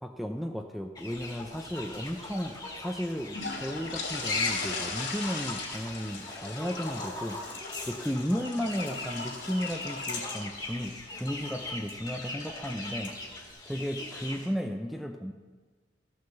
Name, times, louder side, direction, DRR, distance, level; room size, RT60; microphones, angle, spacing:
voice 1, 0.0-7.4 7.8-13.2 13.7-15.3, equal, ahead, 3 dB, 0.5 m, -34 dB
sound 1, 1.0-14.5, left 2 dB, 20° left, 1.8 m, -39 dB
sound 2, 1.1-13.5, left 3 dB, 65° left, 2.6 m, -41 dB
13.5 x 6.3 x 7.0 m, 1.4 s
head